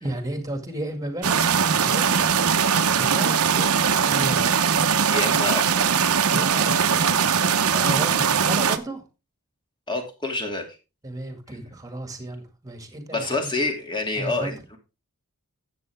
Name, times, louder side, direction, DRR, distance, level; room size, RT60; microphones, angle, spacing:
voice 1, 0.0-2.4 2.9-4.5 6.3-7.1 7.7-9.0 11.0-13.5 14.2-14.5, right 1 dB, 15° right, 7 dB, 2.1 m, -33 dB
sound 1, 1.2-8.8, right 6 dB, 70° right, 0.9 m, -21 dB
voice 2, 5.1-5.9 7.7-8.2 9.9-10.7 13.1-14.8, left 2 dB, 20° left, 4 dB, 2.5 m, -28 dB
12.5 x 8.1 x 3.5 m, 0.29 s
head